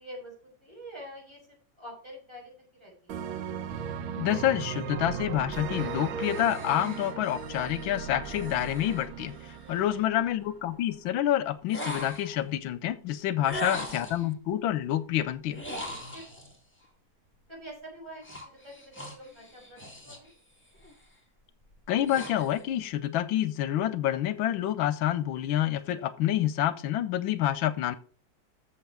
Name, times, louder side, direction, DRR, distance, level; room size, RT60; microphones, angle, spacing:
voice 1, 0.0-1.4 1.8-3.2 9.7-10.0 13.5-13.6 16.1-16.2 17.5-20.3, equal, 15° right, -3 dB, 6.3 m, -46 dB
sound 1, 3.1-10.7, right 7 dB, 85° right, 1.7 m, -37 dB
voice 2, 4.2-15.6 21.9-28.0, left 12 dB, 85° left, 15 dB, 1.5 m, -28 dB
sound 2, 5.7-9.9 11.7-12.5 13.4-14.3 15.5-16.6 18.2-20.3 20.7-21.0 21.6-22.7, equal, 5° left, 2.2 m, -41 dB
8.0 x 7.0 x 6.0 m, 0.39 s
omnidirectional pair, 2.1 m